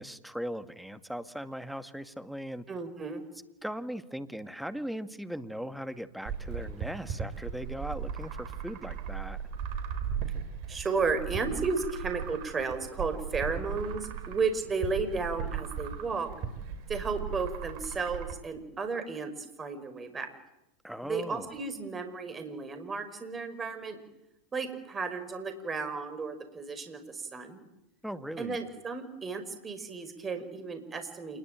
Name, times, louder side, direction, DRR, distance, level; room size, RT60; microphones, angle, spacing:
voice 1, 0.0-2.7 3.6-9.4 20.8-21.5 28.0-28.6, equal, ahead, 10 dB, 1.9 m, -39 dB
voice 2, 2.7-3.2 10.7-16.3 16.9-20.3 21.0-24.0 24.5-27.6 28.4-31.4, right 4 dB, 20° right, 9 dB, 5.6 m, -33 dB
sound 1, 6.3-18.3, right 7 dB, 55° right, 4.7 m, -37 dB
28.0 x 21.0 x 9.3 m, 0.89 s
hypercardioid pair, 95°, 0 cm